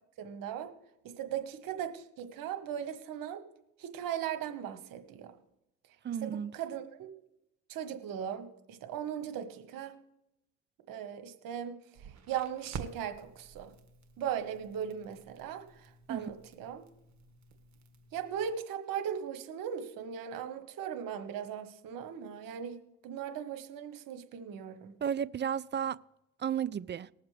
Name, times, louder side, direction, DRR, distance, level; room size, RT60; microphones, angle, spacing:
voice 1, 0.2-0.7 1.0-3.4 3.8-5.3 6.2-7.1 7.7-9.9 10.9-13.7 14.2-16.9 18.1-22.7 23.0-24.9, right 9 dB, 80° right, 1.4 m, -38 dB
voice 2, 6.0-6.5 16.1-16.3 25.0-26.0 26.4-27.1, right 8 dB, 35° right, 0.5 m, -33 dB
Crackle, 11.9-18.5, right 6 dB, 55° right, 1.7 m, -49 dB
20.0 x 7.3 x 3.3 m
supercardioid pair, 60°, 33 cm